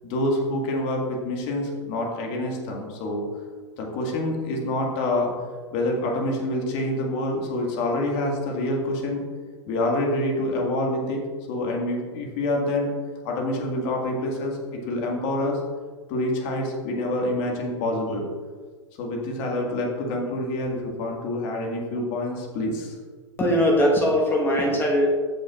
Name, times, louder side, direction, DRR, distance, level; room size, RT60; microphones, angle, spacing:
voice 1, 0.0-3.3 3.8-5.3 5.7-9.2 9.7-11.2 11.5-12.9 13.2-15.6 16.1-18.2 19.0-22.9, left 1 dB, 40° left, 0 dB, 1.8 m, -27 dB
voice 2, 23.4-25.1, equal, 15° left, -1 dB, 1.3 m, -20 dB
14.0 x 6.4 x 2.4 m, 1.5 s
figure-of-eight pair, 105°, 16 cm